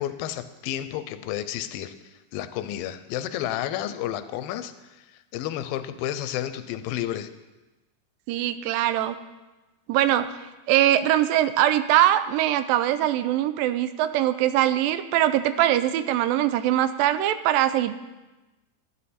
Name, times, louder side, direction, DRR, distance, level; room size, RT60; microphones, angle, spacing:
voice 1, 0.0-1.9 2.3-7.3, left 12 dB, 90° left, 11 dB, 2.4 m, -31 dB
voice 2, 8.3-9.2 9.9-10.4 10.7-18.0, right 12 dB, 85° right, 12 dB, 2.2 m, -22 dB
13.0 x 9.5 x 4.2 m, 1.1 s
omnidirectional pair, 4.1 m